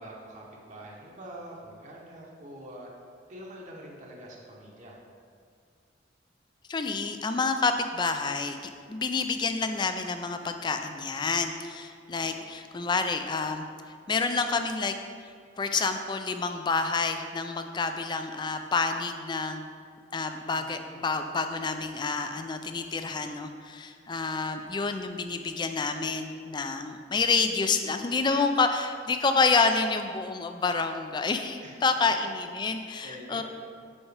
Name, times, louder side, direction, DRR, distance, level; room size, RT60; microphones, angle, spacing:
voice 1, 0.0-2.9 3.3-5.0 12.2-12.4 20.5-21.1 31.6-31.7 32.0-32.3 33.0-33.4, right 1 dB, 40° right, -3 dB, 0.9 m, -45 dB
voice 2, 6.7-8.6 8.9-13.7 14.1-15.0 15.2-15.3 15.6-19.7 20.1-33.4, left 4 dB, 25° left, 7 dB, 0.3 m, -28 dB
7.0 x 5.5 x 3.3 m, 2.2 s
head